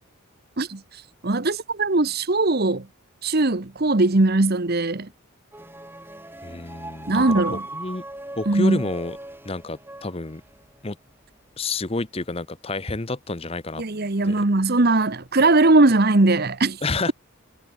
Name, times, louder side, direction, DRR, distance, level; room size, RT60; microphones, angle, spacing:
voice 1, 1.2-2.9 3.2-5.1 7.1-7.6 8.5-8.8 13.8-16.8, right 2 dB, 45° right, 1.1 m, -20 dB
sound 1, 5.5-10.8, right 2 dB, 10° right, 4.4 m, -38 dB
voice 2, 6.4-8.0 8.4-9.2 9.4-10.4 10.8-11.0 11.6-13.8 14.2-14.4 16.8-17.1, left 3 dB, 25° left, 0.8 m, -29 dB
head